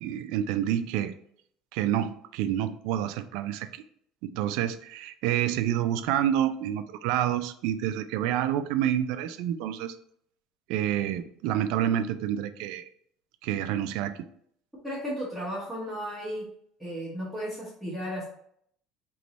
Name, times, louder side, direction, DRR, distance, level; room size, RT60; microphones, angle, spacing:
voice 1, 0.0-1.1 1.7-3.8 4.2-9.9 10.7-12.9 13.4-14.3, right 11 dB, 65° right, 11 dB, 0.3 m, -28 dB
voice 2, 14.8-16.5 16.8-18.2, equal, ahead, -10 dB, 0.9 m, -34 dB
3.4 x 3.1 x 3.9 m, 0.67 s
cardioid pair, 180°, 0 cm